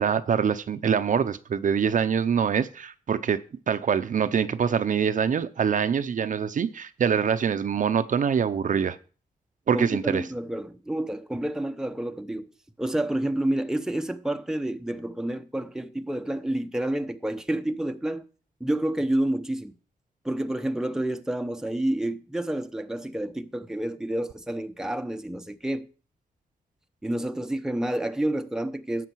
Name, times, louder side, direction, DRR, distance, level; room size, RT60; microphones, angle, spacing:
voice 1, 0.0-3.4 3.7-9.0 9.7-10.2, right 7 dB, 60° right, 0.7 m, -24 dB
voice 2, 9.7-12.5 12.8-18.2 18.6-19.7 20.2-25.9 27.0-29.1, right 1 dB, 5° right, 0.8 m, -29 dB
12.0 x 7.9 x 4.6 m
cardioid pair, 90°, 15 cm